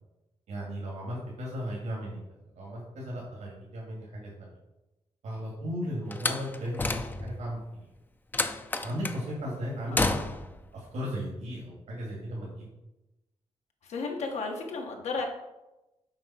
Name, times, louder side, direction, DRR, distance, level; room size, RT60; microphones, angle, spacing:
voice 1, 0.5-2.2 2.5-4.6 5.2-7.9 8.8-10.2 10.7-12.6, equal, 90° right, -5 dB, 2.6 m, -36 dB
Slam, 6.1-7.5 8.3-9.2 9.9-10.6, left 2 dB, 15° left, 0.5 m, -30 dB
voice 2, 9.9-10.3 13.8-15.3, left 4 dB, 80° left, 2 dB, 1.6 m, -34 dB
7.7 x 4.7 x 5.9 m, 1.0 s
wide cardioid pair, 135°, 11 cm